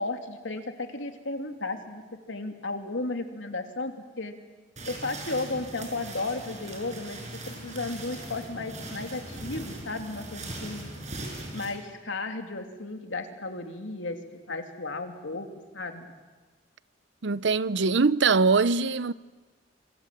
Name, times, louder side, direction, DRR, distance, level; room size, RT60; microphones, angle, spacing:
voice 1, 0.0-2.0 2.3-4.3 4.9-10.9 11.5-14.2 14.5-15.5 15.7-16.1, left 2 dB, 90° left, 2.9 m, -34 dB
sound 1, 4.8-11.7, right 1 dB, 40° right, 6.3 m, -40 dB
voice 2, 17.2-19.1, right 4 dB, 70° right, 0.7 m, -22 dB
27.0 x 25.5 x 7.7 m
head